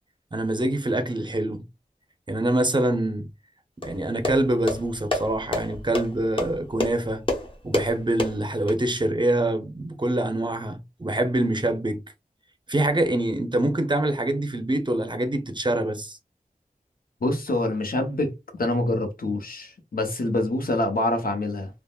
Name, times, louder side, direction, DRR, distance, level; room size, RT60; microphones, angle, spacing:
voice 1, 0.3-1.7 2.3-3.3 3.8-7.2 7.6-12.0 12.7-16.2, right 1 dB, 30° right, 0.6 m, -25 dB
sound 1, 3.8-8.8, left 1 dB, 35° left, 0.9 m, -30 dB
voice 2, 17.2-18.3 18.6-21.7, left 1 dB, 80° left, 0.8 m, -25 dB
3.4 x 2.0 x 2.3 m
wide cardioid pair, 55°, 15 cm